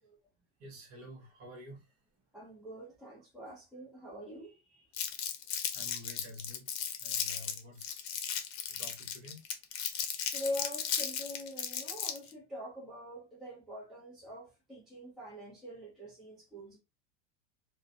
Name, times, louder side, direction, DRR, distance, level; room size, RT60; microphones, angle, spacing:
voice 1, 0.6-1.9 5.7-6.7 7.0-7.9 8.7-9.4, left 1 dB, 40° right, 1.1 m, -49 dB
voice 2, 2.3-4.9 10.3-16.8, left 1 dB, ahead, 0.4 m, -44 dB
Crumpling crinkling, 4.9-12.3, left 8 dB, 55° left, 0.7 m, -36 dB
2.5 x 2.1 x 2.5 m
supercardioid pair, 145°, 38 cm